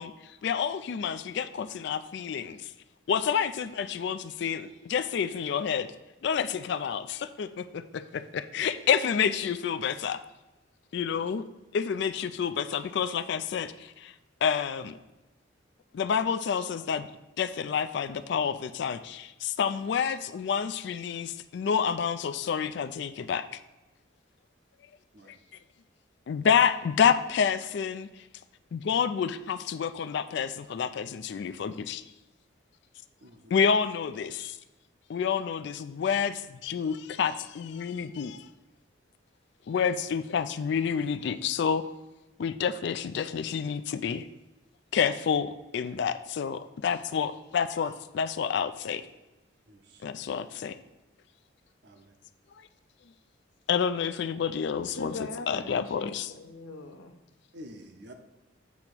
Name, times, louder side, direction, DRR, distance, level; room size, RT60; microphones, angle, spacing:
voice 1, 0.0-2.7 3.1-5.9 6.2-10.2 10.9-11.4 11.7-14.1 14.4-15.0 15.9-17.1 17.4-23.6 25.3-25.4 26.3-28.2 28.7-32.0 33.5-34.6 35.1-38.5 39.7-41.8 42.4-44.3 44.9-49.0 50.0-50.8 52.6-52.7 53.7-55.1 55.5-56.3, left 7 dB, 55° left, 13 dB, 0.3 m, -29 dB
voice 2, 33.2-33.6 49.7-50.1 51.8-52.2 57.5-58.1, equal, 55° right, 5 dB, 0.8 m, -49 dB
voice 3, 54.9-57.2, left 2 dB, 85° left, 3 dB, 0.9 m, -41 dB
8.3 x 2.9 x 6.0 m, 1.0 s
head